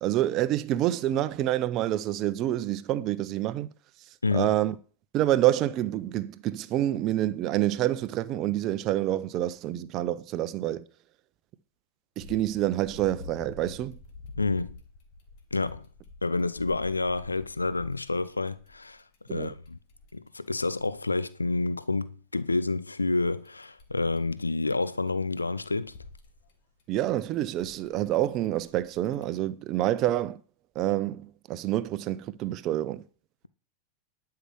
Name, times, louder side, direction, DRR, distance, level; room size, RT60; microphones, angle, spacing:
voice 1, 0.0-3.7 4.3-4.7 5.1-10.8 12.2-14.0 19.3-19.5 26.9-30.4 30.7-33.0, right 13 dB, 35° right, 0.8 m, -27 dB
voice 2, 4.2-4.5 14.4-14.8 15.5-15.9 16.2-19.8 20.1-26.0, left 3 dB, 80° left, 0.5 m, -29 dB
sound 1, 12.2-21.0 23.3-25.1 25.4-29.2, left 4 dB, 45° left, 2.2 m, -48 dB
11.0 x 5.8 x 7.6 m
figure-of-eight pair, 90°, 0 cm